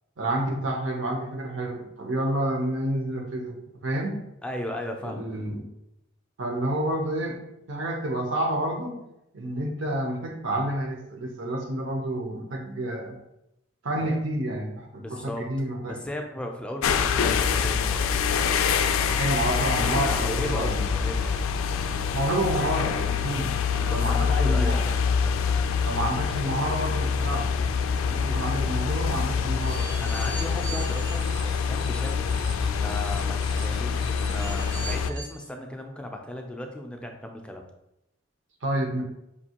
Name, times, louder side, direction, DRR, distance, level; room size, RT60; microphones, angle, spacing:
voice 1, 0.2-3.6 3.8-4.2 5.0-5.6 6.4-7.4 7.7-9.0 9.3-13.2 13.8-16.0 19.2-20.9 22.1-24.8 25.9-27.5 28.0-29.9 38.6-39.0, right 1 dB, 65° right, 3 dB, 0.7 m, -29 dB
voice 2, 4.4-5.2 14.0-14.2 15.0-15.4 15.8-18.1 20.0-21.3 23.8-25.4 30.0-37.6, left 1 dB, 5° left, 2 dB, 0.4 m, -36 dB
sound 1, 16.8-35.1, left 6 dB, 85° left, 0.3 m, -25 dB
sound 2, 29.6-35.4, right 3 dB, 80° right, 1.1 m, -41 dB
5.1 x 2.7 x 2.8 m, 0.85 s
head